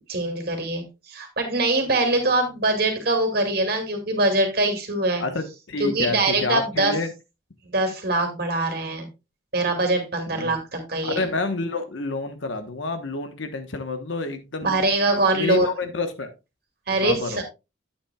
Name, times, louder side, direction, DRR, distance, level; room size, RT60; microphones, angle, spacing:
voice 1, 0.1-5.2 5.8-6.9 7.7-9.1 9.5-11.2 14.6-15.7 16.9-17.4, right 2 dB, 50° right, 4 dB, 2.2 m, -23 dB
voice 2, 5.2-7.1 10.3-10.6 11.0-16.3 17.0-17.4, left 3 dB, 75° left, 8 dB, 1.1 m, -29 dB
10.0 x 8.6 x 2.3 m, 0.26 s
head